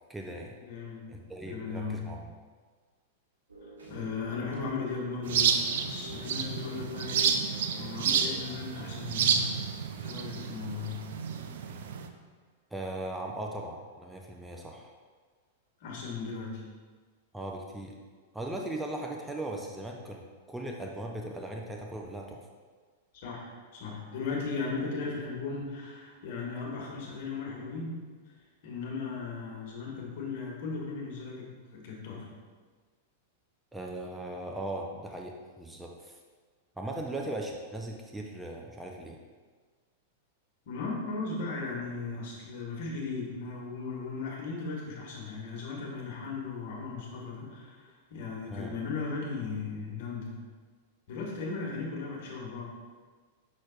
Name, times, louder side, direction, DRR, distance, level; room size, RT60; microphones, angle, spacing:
voice 1, 0.1-0.5 1.1-2.3 12.7-14.9 17.3-17.9 18.3-22.5 33.7-36.2 36.8-39.2 48.5-48.7, right 1 dB, 5° right, 0 dB, 0.6 m, -38 dB
voice 2, 0.7-2.1 3.9-9.7 10.0-11.1 15.8-16.7 23.1-28.0 28.3-28.4 28.6-32.3 40.7-50.4 51.1-52.6, left 4 dB, 55° left, -3 dB, 1.8 m, -37 dB
sound 1, 3.5-11.8, equal, 80° right, 1.6 m, -51 dB
sound 2, 5.3-12.1, right 7 dB, 65° right, 0.4 m, -30 dB
6.2 x 6.2 x 2.4 m, 1.5 s
hypercardioid pair, 100°, 0 cm